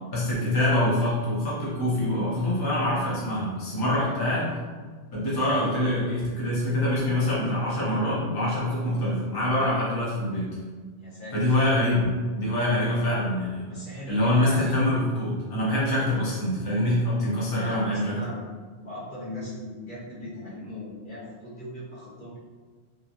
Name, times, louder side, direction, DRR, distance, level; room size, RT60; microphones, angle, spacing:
voice 1, 0.1-4.6 5.1-10.5 11.3-13.6 14.1-18.2, left 1 dB, 25° left, -8 dB, 0.7 m, -25 dB
voice 2, 3.9-4.5 11.0-11.6 12.7-13.0 13.7-14.8 15.9-16.0 17.5-18.4 18.8-22.4, left 1 dB, 55° left, -8 dB, 0.9 m, -39 dB
2.9 x 2.5 x 2.5 m, 1.4 s
omnidirectional pair, 1.1 m